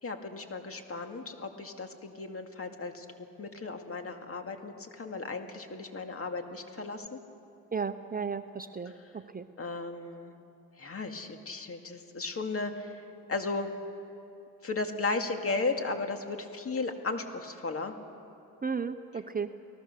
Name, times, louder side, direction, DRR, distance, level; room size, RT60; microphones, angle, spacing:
voice 1, 0.0-7.2 8.9-9.1 9.6-10.3 10.8-13.0 13.3-13.7 14.6-17.9, left 3 dB, 40° left, 5 dB, 2.2 m, -35 dB
voice 2, 7.7-8.9 9.3-9.4 18.6-19.5, right 5 dB, 25° right, 9 dB, 0.8 m, -33 dB
29.5 x 19.0 x 6.8 m, 2.7 s
cardioid pair, 85°, 36 cm